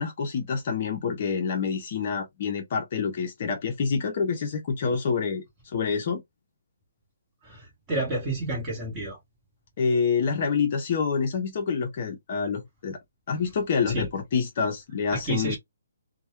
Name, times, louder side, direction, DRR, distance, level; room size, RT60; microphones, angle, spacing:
voice 1, 0.0-6.2 9.8-13.0 13.3-15.6, left 5 dB, 35° left, 0.5 m, -27 dB
voice 2, 7.4-9.2 13.9-14.1 15.1-15.6, right 2 dB, 15° right, 0.9 m, -30 dB
2.2 x 2.0 x 2.9 m
hypercardioid pair, 170°, 0 cm